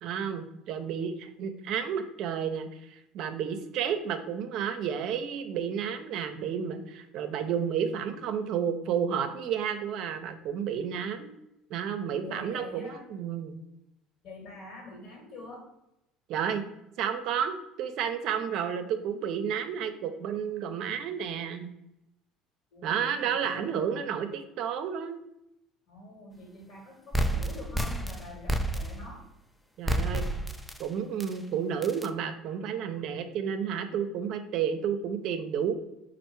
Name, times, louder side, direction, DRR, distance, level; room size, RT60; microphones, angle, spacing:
voice 1, 0.0-11.3 11.7-13.6 16.3-16.6 17.0-21.7 22.8-25.2 29.8-30.3 30.8-35.7, right 8 dB, 60° right, 8 dB, 0.5 m, -31 dB
voice 2, 12.2-13.1 14.2-15.7 22.7-24.2 25.9-29.2, left 3 dB, 55° left, 1 dB, 1.5 m, -45 dB
sound 1, 27.1-29.2 29.9-30.8 31.2-31.3 31.8-32.1, right 1 dB, 5° left, 0.3 m, -30 dB
4.4 x 2.5 x 4.4 m, 0.84 s
cardioid pair, 120°, 0 cm